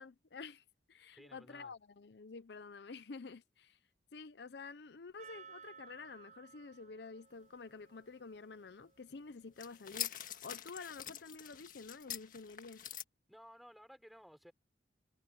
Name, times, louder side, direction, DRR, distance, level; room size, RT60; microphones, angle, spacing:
voice 1, 0.0-3.8 4.1-12.8, left 4 dB, 70° left, 0.6 m, -50 dB
voice 2, 1.1-1.7 13.3-14.5, equal, ahead, 5.8 m, -57 dB
Percussion, 5.2-10.2, right 6 dB, 40° right, 8.0 m, -59 dB
sound 1, 9.6-13.0, left 10 dB, 50° left, 1.7 m, -45 dB
head